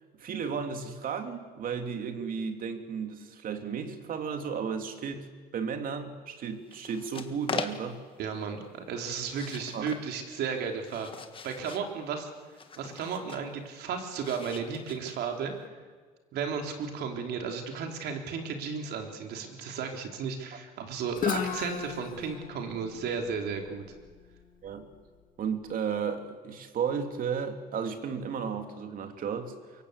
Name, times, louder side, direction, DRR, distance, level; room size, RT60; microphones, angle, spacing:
voice 1, 0.2-8.0 9.7-9.8 24.6-24.9 25.4-29.8, right 6 dB, 55° right, 6 dB, 2.9 m, -34 dB
sound 1, 6.7-8.1 9.2-10.1 10.6-11.9 12.6-13.5 14.2-15.4, left 5 dB, 30° left, 1.8 m, -40 dB
voice 2, 8.2-11.1 11.4-12.3 12.8-15.5 16.3-23.8, right 6 dB, 75° right, 3 dB, 3.7 m, -34 dB
Guitar, 21.2-24.9, left 7 dB, 55° left, 2.5 m, -36 dB
24.0 x 23.5 x 8.4 m, 1.5 s
cardioid pair, 110°, 17 cm